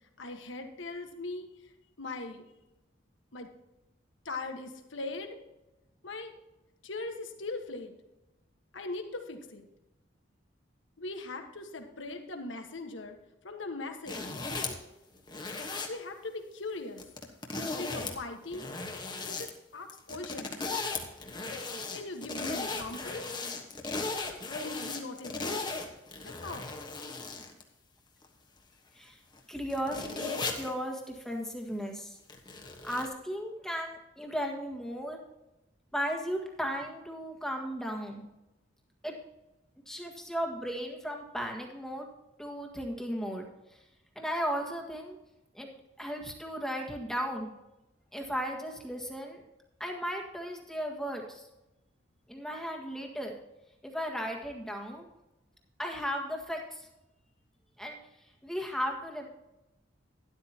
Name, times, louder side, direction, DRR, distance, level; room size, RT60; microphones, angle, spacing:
voice 1, 0.2-1.5 2.0-2.5 3.3-3.5 4.2-5.4 6.0-6.3 6.8-7.9 8.7-9.7 11.0-13.2 13.4-14.2 15.9-17.0 17.6-18.7 19.3-20.5 21.9-23.3 24.5-25.6 26.2-26.7, left 2 dB, 75° left, 5 dB, 1.4 m, -40 dB
sound 1, 14.1-14.8 15.3-15.9 17.0-18.2 18.4-19.5 19.9-27.6 28.2-28.3 29.4-29.5 29.7-30.7 32.3-33.1, left 3 dB, 20° left, 1.3 m, -36 dB
voice 2, 29.5-32.2 32.8-35.2 35.9-38.2 39.0-39.1 39.9-42.0 42.4-43.8 44.1-45.2 45.5-45.7 46.0-47.5 48.1-49.4 49.8-51.5 52.3-53.4 53.8-55.1 55.8-56.9 57.8-58.0 58.4-59.3, equal, 5° left, 1 dB, 1.6 m, -35 dB
12.5 x 12.0 x 2.9 m, 0.95 s
head